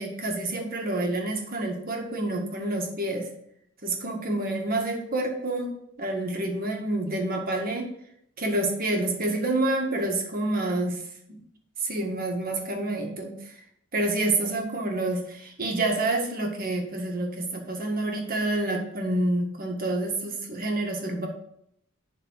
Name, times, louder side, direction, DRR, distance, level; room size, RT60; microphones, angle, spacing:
voice 1, 0.0-3.3 3.8-5.7 6.0-7.9 8.4-11.0 11.3-11.4 11.8-13.3 13.9-21.3, right 2 dB, 45° right, 2 dB, 1.8 m, -28 dB
11.0 x 4.0 x 5.7 m, 0.73 s
head